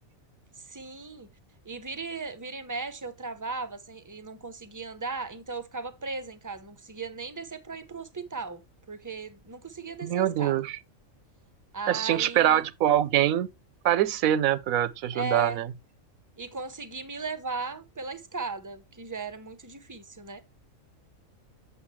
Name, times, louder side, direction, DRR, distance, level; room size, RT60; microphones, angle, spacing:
voice 1, 0.7-1.3 1.6-8.6 8.9-10.6 11.7-12.6 15.1-15.6 16.4-20.4, right 4 dB, 20° right, 0.5 m, -37 dB
voice 2, 10.0-10.8 11.9-13.5 13.8-15.7, right 11 dB, 90° right, 1.1 m, -24 dB
7.9 x 6.8 x 3.1 m
omnidirectional pair, 1.4 m